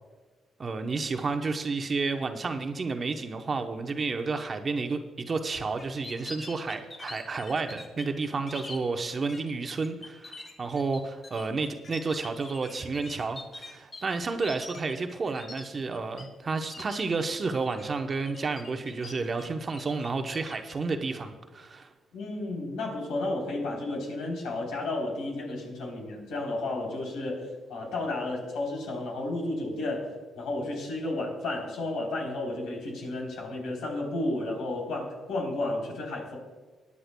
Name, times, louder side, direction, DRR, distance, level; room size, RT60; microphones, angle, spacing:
voice 1, 0.6-21.9, right 4 dB, 40° right, 6 dB, 0.9 m, -31 dB
sound 1, 5.8-8.8 9.3-9.5 9.8-16.2 16.5-17.0 17.4-17.8 18.2-19.4 19.7-20.7, left 2 dB, 40° left, 1.8 m, -44 dB
voice 2, 22.1-36.4, left 2 dB, 80° left, -1 dB, 3.5 m, -32 dB
22.0 x 9.8 x 2.2 m, 1.3 s
cardioid pair, 90°, 0 cm